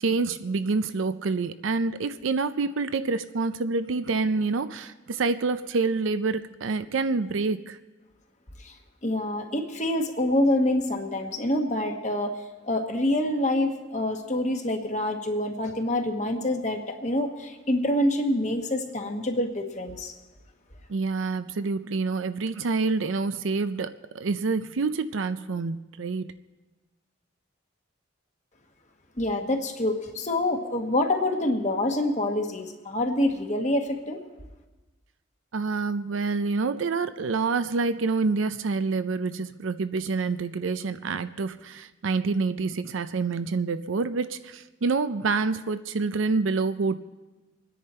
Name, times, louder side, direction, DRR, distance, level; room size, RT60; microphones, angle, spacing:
voice 1, 0.0-7.8 20.9-26.3 35.5-47.0, right 4 dB, 85° right, 11 dB, 0.5 m, -27 dB
voice 2, 9.0-12.3 12.6-20.1 29.2-34.2, left 1 dB, 35° left, 3 dB, 1.3 m, -26 dB
25.5 x 10.0 x 4.4 m, 1.1 s
head